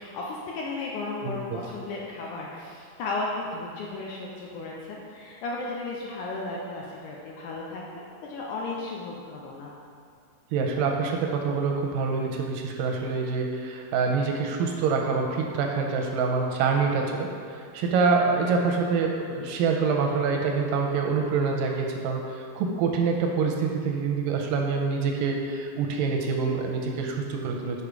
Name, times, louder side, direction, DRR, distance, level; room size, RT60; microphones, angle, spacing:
voice 1, 0.0-8.0 8.3-9.7, left 2 dB, 85° left, -3 dB, 1.8 m, -34 dB
voice 2, 1.2-1.6 10.5-27.8, right 4 dB, 80° right, 1 dB, 2.1 m, -26 dB
6.8 x 4.7 x 5.0 m, 2.3 s
omnidirectional pair, 4.2 m